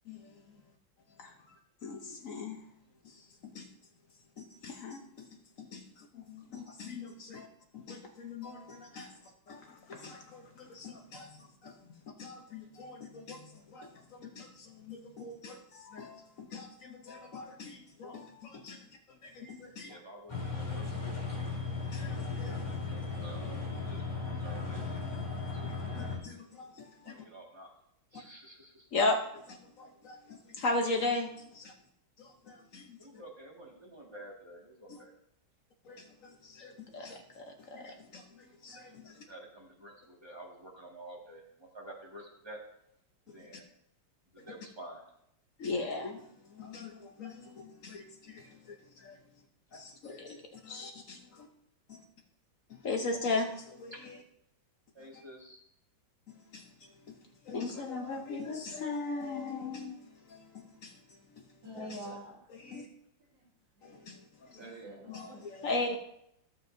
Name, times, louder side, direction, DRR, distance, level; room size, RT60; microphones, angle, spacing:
voice 1, 1.8-2.6 3.5-3.7 4.4-5.0 5.6-5.8 6.1-7.5 7.7-9.1 9.5-11.7 12.2-13.9 14.2-18.8 19.2-20.0 21.9-22.6 26.0-27.2 28.9-29.2 29.5-31.7 32.2-33.0 34.9-35.0 35.9-39.1 45.6-46.2 46.5-49.2 49.7-51.5 51.9-52.0 52.8-54.2 56.5-56.6 57.5-60.0 60.3-60.4 60.8-60.9 62.6-62.9 63.8-64.2 65.1-66.0, left 3 dB, 65° left, 3 dB, 0.8 m, -38 dB
voice 2, 19.8-21.6 22.6-25.2 25.5-26.1 27.0-27.7 28.1-28.9 33.0-35.1 39.0-42.6 43.3-43.6 44.3-45.0 53.9-54.0 54.9-55.6 64.5-64.9, right 1 dB, 15° right, -2 dB, 1.6 m, -50 dB
sound 1, 20.3-26.2, left 4 dB, 15° left, 2.8 m, -36 dB
voice 3, 61.6-62.4 63.3-63.5 63.8-63.9 64.6-65.5, equal, 60° right, -3 dB, 2.2 m, -46 dB
15.0 x 7.2 x 2.6 m, 0.75 s
omnidirectional pair, 2.3 m